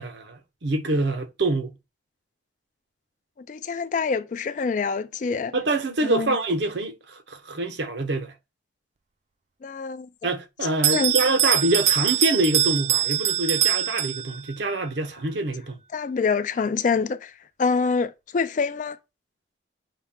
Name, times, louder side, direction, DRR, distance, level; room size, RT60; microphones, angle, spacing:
voice 1, 0.0-1.7 5.5-8.3 10.2-15.8, right 2 dB, 70° right, 0.7 m, -26 dB
voice 2, 3.4-5.5 6.0-6.4 9.6-10.1 10.9-11.1 15.9-17.3 17.6-19.0, left 5 dB, 40° left, 0.3 m, -25 dB
Bell, 10.8-14.6, right 11 dB, 40° right, 0.4 m, -23 dB
5.7 x 2.3 x 3.5 m
head